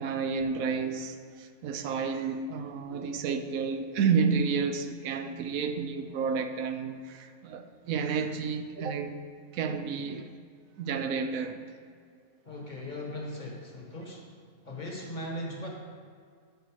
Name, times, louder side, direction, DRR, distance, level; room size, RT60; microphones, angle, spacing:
voice 1, 0.0-9.2 9.5-10.3 10.8-11.6, right 5 dB, 75° right, 7 dB, 1.0 m, -30 dB
voice 2, 12.4-14.3 14.6-15.7, left 1 dB, 35° left, -1 dB, 1.3 m, -38 dB
12.0 x 4.4 x 4.7 m, 2.1 s
omnidirectional pair, 1.5 m